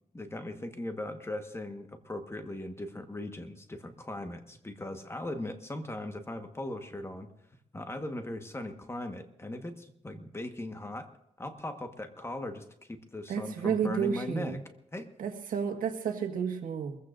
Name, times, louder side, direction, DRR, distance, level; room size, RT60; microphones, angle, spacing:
voice 1, 0.1-7.3 7.7-11.1 11.4-14.6 14.9-15.1, left 1 dB, 20° left, 6 dB, 1.4 m, -39 dB
voice 2, 13.3-14.6 15.2-17.0, right 7 dB, 80° right, 3 dB, 1.7 m, -31 dB
23.5 x 15.0 x 2.6 m, 0.81 s
cardioid pair, 95°, 14 cm